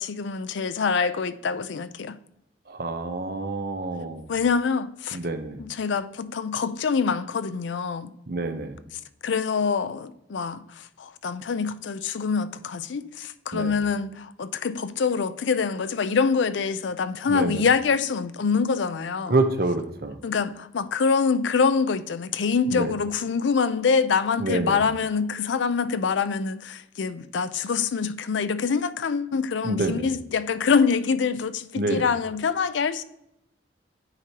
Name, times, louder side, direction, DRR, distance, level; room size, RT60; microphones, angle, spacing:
voice 1, 0.0-2.2 4.3-5.2 5.6-8.1 9.2-19.3 20.2-33.0, left 5 dB, 80° left, 0.5 m, -25 dB
voice 2, 2.7-4.3 5.1-5.6 8.3-8.8 13.5-13.7 17.3-17.6 19.3-20.2 22.7-22.9 24.4-24.8 29.6-30.1 31.7-32.1, right 2 dB, 55° right, 0.7 m, -27 dB
9.6 x 4.6 x 2.8 m
head